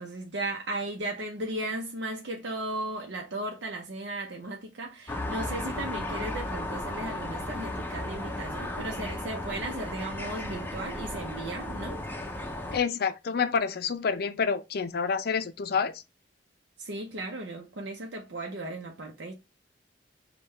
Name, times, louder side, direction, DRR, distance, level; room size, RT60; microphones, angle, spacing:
voice 1, 0.0-12.0 16.8-19.3, right 2 dB, 80° right, 0.7 m, -36 dB
sound 1, 5.1-12.8, left 1 dB, 10° left, 0.6 m, -35 dB
voice 2, 12.7-16.0, left 6 dB, 60° left, 0.5 m, -28 dB
5.5 x 2.3 x 3.2 m
head